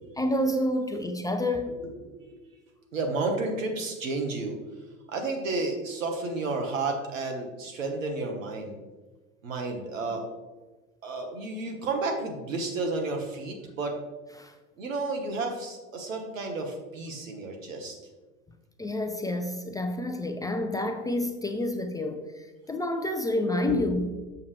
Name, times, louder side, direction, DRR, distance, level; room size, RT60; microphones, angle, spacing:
voice 1, 0.2-1.7 14.4-14.5 18.8-24.1, left 1 dB, 10° left, 5 dB, 0.5 m, -29 dB
voice 2, 1.8-2.4 2.9-4.6 5.1-8.8 9.4-10.3 11.0-14.0 14.8-18.1 23.7-23.8, right 3 dB, 75° right, 4 dB, 1.5 m, -32 dB
7.4 x 7.1 x 3.3 m, 1.2 s
hypercardioid pair, 90°, 39 cm